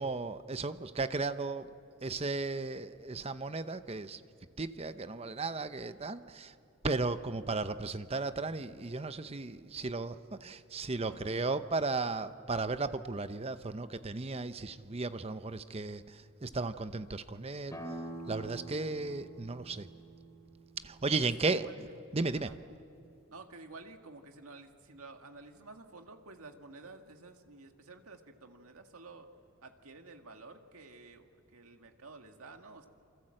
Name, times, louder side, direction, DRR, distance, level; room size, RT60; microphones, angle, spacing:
voice 1, 0.0-1.7 2.0-4.2 4.6-6.5 6.8-17.8 18.3-19.9 20.8-21.7 22.1-22.5, right 3 dB, 25° right, 11 dB, 0.7 m, -35 dB
voice 2, 11.1-11.4 21.2-21.9 22.4-22.6 23.3-29.3 29.6-32.9, right 3 dB, 80° right, 5 dB, 1.9 m, -51 dB
sound 1, 17.7-23.1, right 2 dB, 15° left, 2.7 m, -47 dB
27.5 x 25.0 x 7.8 m, 2.6 s
head